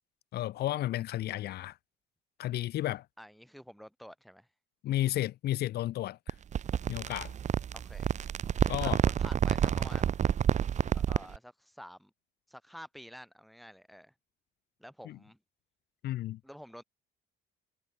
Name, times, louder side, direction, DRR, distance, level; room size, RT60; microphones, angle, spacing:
voice 1, 0.3-1.8 2.4-3.1 4.8-6.3 6.9-7.3 8.7-9.0 15.0-15.2 16.0-16.4, left 14 dB, 70° left, 3.1 m, -32 dB
voice 2, 3.2-4.5 7.7-8.2 8.8-10.2 10.9-12.1 12.5-14.1 14.8-15.4 16.4-16.8, equal, ahead, 6.0 m, -49 dB
sound 1, 6.3-11.4, right 8 dB, 45° right, 1.4 m, -29 dB
cardioid pair, 110°, 17 cm